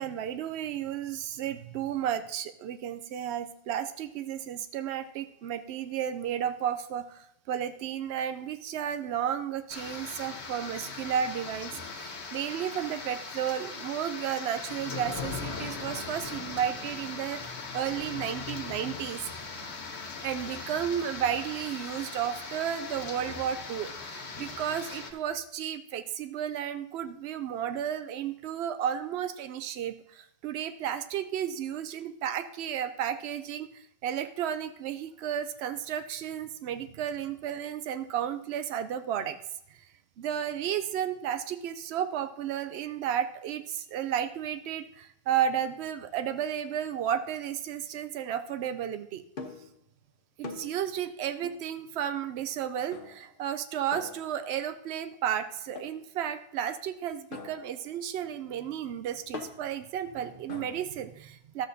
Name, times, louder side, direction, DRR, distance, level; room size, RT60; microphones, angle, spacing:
voice 1, 0.0-19.3 20.2-39.4 40.2-49.2 50.4-61.7, right 9 dB, 80° right, 10 dB, 0.8 m, -33 dB
sound 1, 9.7-25.1, left 4 dB, 90° left, 1.3 m, -39 dB
sound 2, 49.4-49.8 50.4-50.9 51.4-51.7 52.9-53.4 53.9-54.6 55.8-56.1 57.3-60.8, left 4 dB, 55° left, 1.1 m, -44 dB
13.0 x 7.4 x 2.7 m, 0.71 s
omnidirectional pair, 1.1 m